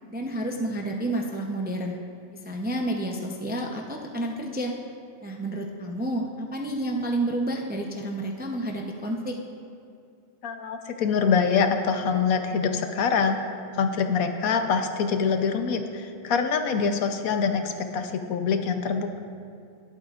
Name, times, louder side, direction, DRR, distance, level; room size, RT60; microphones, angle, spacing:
voice 1, 0.1-2.0 2.4-4.7 5.2-9.4, right 1 dB, 15° right, 1 dB, 0.4 m, -30 dB
voice 2, 10.4-13.4 13.7-19.2, left 5 dB, 90° left, 6 dB, 1.2 m, -25 dB
19.0 x 8.6 x 2.5 m, 2.4 s
omnidirectional pair, 1.4 m